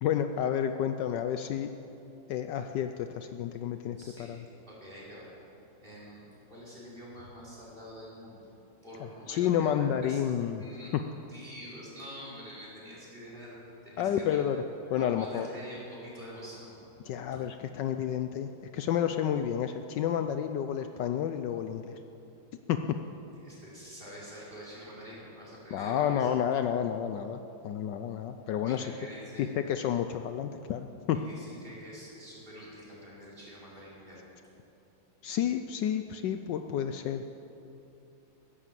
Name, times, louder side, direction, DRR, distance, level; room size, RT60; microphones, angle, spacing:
voice 1, 0.0-1.7 2.3-4.0 4.3-4.4 9.3-10.6 14.0-14.6 14.9-15.5 17.1-22.0 22.7-22.8 25.7-27.4 27.6-28.9 29.6-31.2 35.2-37.3, left 9 dB, 75° left, 8 dB, 1.2 m, -30 dB
voice 2, 4.0-5.3 5.8-8.5 8.8-10.2 10.6-10.9 11.3-13.6 13.8-14.4 15.0-16.8 23.3-26.3 28.6-29.5 31.1-34.2, equal, 25° right, -7 dB, 4.8 m, -46 dB
15.5 x 11.0 x 7.5 m, 2.9 s
omnidirectional pair, 2.1 m